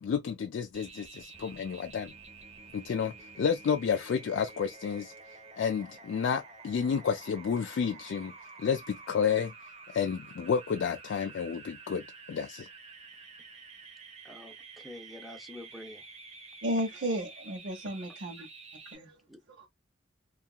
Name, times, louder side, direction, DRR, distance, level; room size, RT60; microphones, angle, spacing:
voice 1, 0.0-2.1 2.7-5.1 5.5-8.3 8.6-9.5 9.9-12.7, left 6 dB, 75° left, 0.3 m, -31 dB
sound 1, 0.7-19.0, right 4 dB, 35° right, 0.9 m, -50 dB
voice 2, 14.2-16.0 19.3-19.4, left 1 dB, ahead, 0.5 m, -47 dB
voice 3, 16.6-18.5 18.9-19.2 19.6-19.7, equal, 70° right, 0.8 m, -33 dB
2.8 x 2.4 x 2.3 m
head